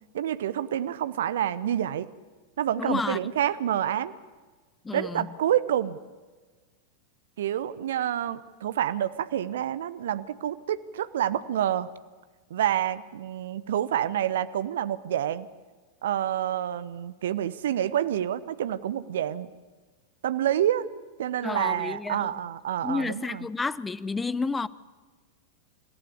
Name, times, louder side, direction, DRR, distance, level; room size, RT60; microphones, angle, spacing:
voice 1, 0.1-2.1 2.6-4.1 4.9-6.0 7.4-11.9 12.5-15.5 16.0-19.5 20.2-20.8 21.2-23.5, right 11 dB, 60° right, 0.8 m, -28 dB
voice 2, 2.8-3.2 4.8-5.3 21.4-22.3 22.8-24.7, left 4 dB, 10° left, 0.7 m, -30 dB
27.5 x 15.0 x 9.9 m
figure-of-eight pair, 90°, 0 cm